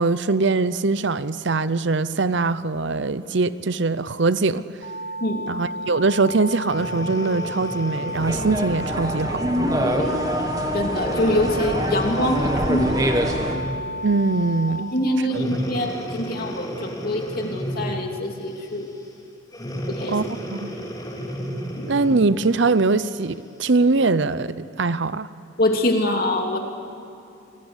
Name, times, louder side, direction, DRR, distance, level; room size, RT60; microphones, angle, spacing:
voice 1, 0.0-4.6 5.5-9.4 14.0-14.9 20.1-20.2 20.5-20.7 21.9-25.3, right 3 dB, 60° right, 15 dB, 0.7 m, -22 dB
sound 1, 4.8-14.8, equal, 65° left, 2.3 m, -32 dB
Breathing, 6.7-9.3 9.9-10.1 11.0-13.9 15.3-18.1 19.5-22.3 22.9-23.0, equal, 20° left, 3.9 m, -33 dB
sound 2, 8.2-13.6, equal, 20° right, 1.9 m, -25 dB
voice 2, 9.8-10.2 10.7-13.1 14.7-18.9 19.9-20.1 21.8-21.9 25.6-26.6, left 1 dB, 50° left, 2 dB, 3.0 m, -24 dB
28.5 x 20.5 x 9.9 m, 2.6 s
head